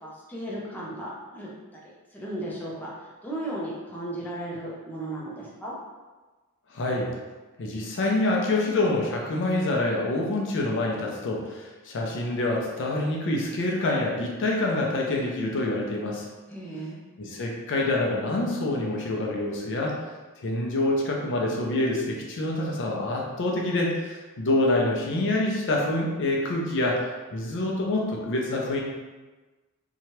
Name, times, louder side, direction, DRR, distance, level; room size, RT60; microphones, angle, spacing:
voice 1, 0.0-1.5 2.1-5.7 16.5-17.0, right 1 dB, 10° left, -6 dB, 0.5 m, -35 dB
voice 2, 6.7-7.1 7.6-16.3 17.2-20.0 20.4-27.0 27.3-28.8, left 2 dB, 55° left, -1 dB, 0.5 m, -26 dB
2.8 x 2.3 x 3.0 m, 1.2 s
head